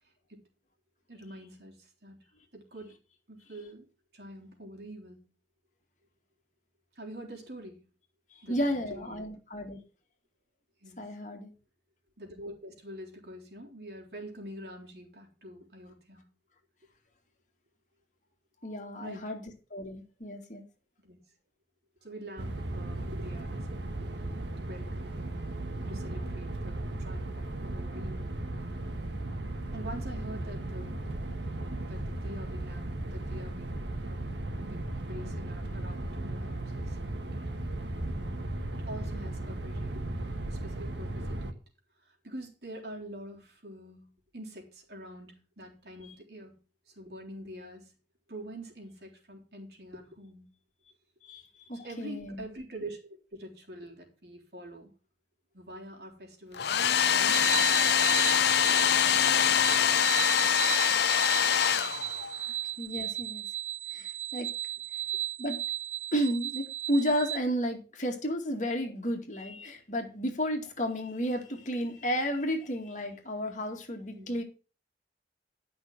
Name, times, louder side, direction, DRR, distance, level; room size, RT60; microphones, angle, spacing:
voice 1, 1.1-2.2 2.5-3.0 3.3-3.9 4.1-5.2 7.0-7.8 8.4-9.3 10.8-11.2 12.2-16.2 19.0-19.3 21.0-21.2 22.0-23.7 24.6-25.4 25.8-28.4 29.7-31.1 31.8-34.3 34.6-37.5 38.7-40.0 40.5-41.4 42.0-46.6 46.9-47.9 48.3-50.5 51.8-54.9 55.5-58.0 60.9-61.0 74.1-74.4, right 1 dB, 65° right, 0 dB, 3.6 m, -45 dB
voice 2, 8.3-9.8 11.0-11.5 18.6-19.4 19.7-20.6 51.2-52.4 62.8-63.4 63.9-64.5 65.4-65.6 66.1-74.4, equal, 45° left, 3 dB, 2.3 m, -32 dB
sound 1, 22.4-41.5, right 1 dB, 85° right, 1.5 m, -36 dB
Domestic sounds home sounds, 56.5-62.4, left 8 dB, 70° left, 0.6 m, -24 dB
sound 2, 57.3-67.4, right 12 dB, 40° right, 0.5 m, -36 dB
11.5 x 6.0 x 6.1 m, 0.35 s
head